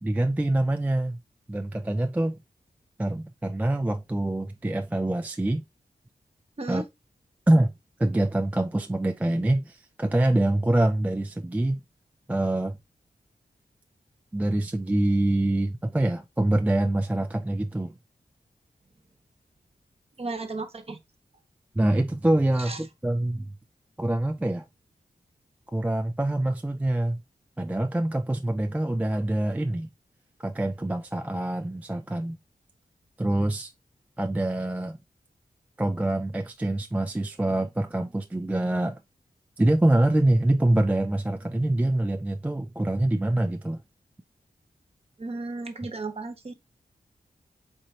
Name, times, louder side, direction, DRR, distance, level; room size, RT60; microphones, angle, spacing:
voice 1, 0.0-1.2 1.5-2.4 3.0-5.6 6.7-6.8 7.5-7.7 8.0-11.8 12.3-12.8 14.3-17.9 21.8-23.5 24.0-24.7 25.7-27.2 27.6-29.9 30.4-32.4 33.2-33.7 34.2-35.0 35.8-39.0 39.6-43.8, right 1 dB, 10° right, 0.3 m, -25 dB
voice 2, 20.2-21.0 22.6-22.8 45.2-46.5, right 3 dB, 40° right, 0.9 m, -34 dB
4.4 x 3.9 x 2.7 m
wide cardioid pair, 135°, 16 cm